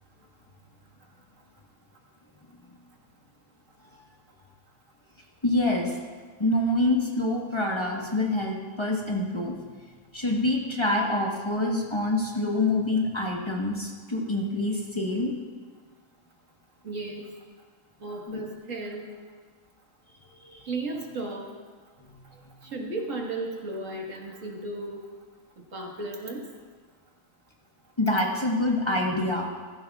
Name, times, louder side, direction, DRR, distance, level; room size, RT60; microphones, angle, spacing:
voice 1, 5.4-6.0 6.4-9.6 10.1-15.3 18.3-18.4 20.4-20.6 22.0-22.1 22.4-22.5 28.0-29.5, left 2 dB, 25° left, -1 dB, 1.2 m, -26 dB
voice 2, 16.8-17.3 18.0-19.1 20.7-21.5 22.6-25.0 25.7-26.4, right 2 dB, 75° right, 0 dB, 2.0 m, -34 dB
15.5 x 15.0 x 2.4 m, 1.5 s
omnidirectional pair, 1.3 m